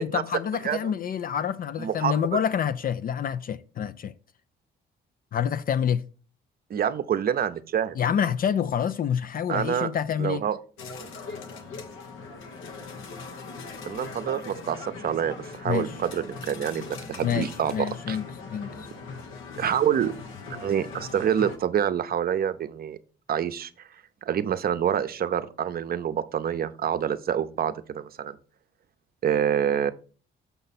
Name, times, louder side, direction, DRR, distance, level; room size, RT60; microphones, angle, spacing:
voice 1, 0.0-4.1 5.3-6.1 8.0-10.4 15.6-15.9 17.2-18.2 18.5-18.9, left 8 dB, 45° left, 0.4 m, -27 dB
voice 2, 1.8-2.1 6.7-8.0 9.5-9.9 10.2-10.6 13.8-18.2 19.6-20.1 20.6-23.0 23.3-23.7 24.3-28.4 29.2-29.9, right 9 dB, 50° right, 0.6 m, -27 dB
sound 1, 10.8-21.6, left 4 dB, 85° left, 1.1 m, -40 dB
6.9 x 5.4 x 4.1 m
cardioid pair, 90°, 20 cm